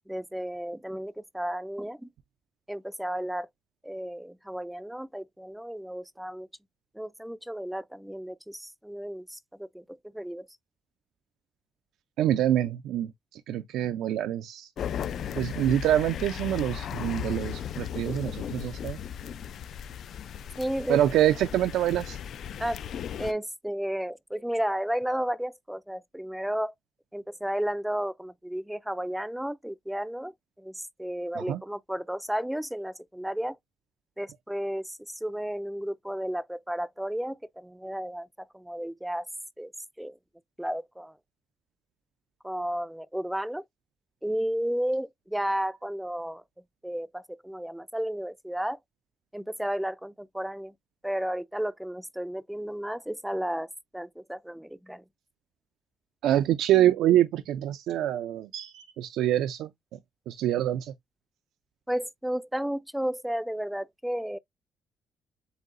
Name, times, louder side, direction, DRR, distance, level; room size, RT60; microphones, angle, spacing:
voice 1, 0.1-2.1 2.7-3.5 3.8-6.5 6.9-10.5 20.6-21.0 22.6-22.8 23.2-26.7 27.1-33.6 34.2-39.3 39.6-39.7 40.0-40.2 40.6-41.2 42.4-43.6 44.2-46.4 46.8-48.8 49.3-50.7 51.0-55.0 61.9-64.4, equal, 5° right, 0.4 m, -33 dB
voice 2, 12.2-14.7 15.3-19.0 20.9-22.2 31.4-31.6 56.2-59.7 60.3-60.9, right 12 dB, 85° right, 0.5 m, -26 dB
sound 1, 14.8-23.3, left 9 dB, 65° left, 0.4 m, -36 dB
7.9 x 2.7 x 2.5 m
cardioid pair, 90°, 0 cm